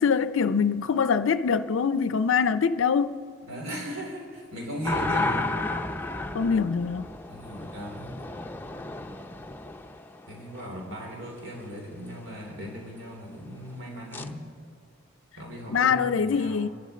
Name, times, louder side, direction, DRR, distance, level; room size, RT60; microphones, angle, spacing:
voice 1, 0.0-3.2 6.3-7.1 15.7-16.7, left 6 dB, 65° left, 0.4 m, -24 dB
voice 2, 3.5-5.5 7.3-8.2 10.3-14.5 15.4-16.7, equal, 80° right, 3.4 m, -37 dB
sound 1, 4.8-10.7 14.1-14.3, left 2 dB, 10° left, 0.5 m, -32 dB
25.5 x 11.5 x 4.2 m
head